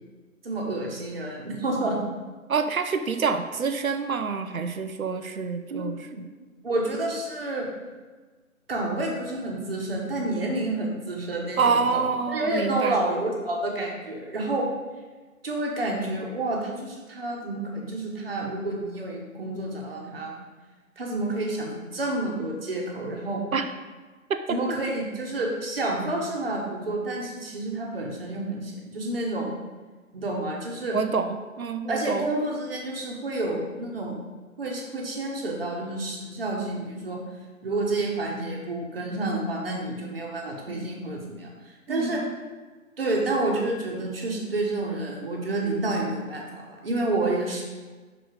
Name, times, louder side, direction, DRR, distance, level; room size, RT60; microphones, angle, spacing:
voice 1, 0.4-2.0 5.7-5.9 6.6-7.7 8.7-14.7 15.4-20.3 21.0-23.4 24.5-29.5 30.1-31.0 31.9-34.2 34.6-37.2 37.6-42.2 43.0-47.6, right 2 dB, 45° right, -1 dB, 1.4 m, -29 dB
voice 2, 2.5-6.3 11.6-13.0 23.5-23.7 24.3-24.4 30.9-32.3 41.9-42.3, right 5 dB, 75° right, 8 dB, 0.8 m, -27 dB
5.9 x 5.0 x 5.0 m, 1.3 s
figure-of-eight pair, 160°, 42 cm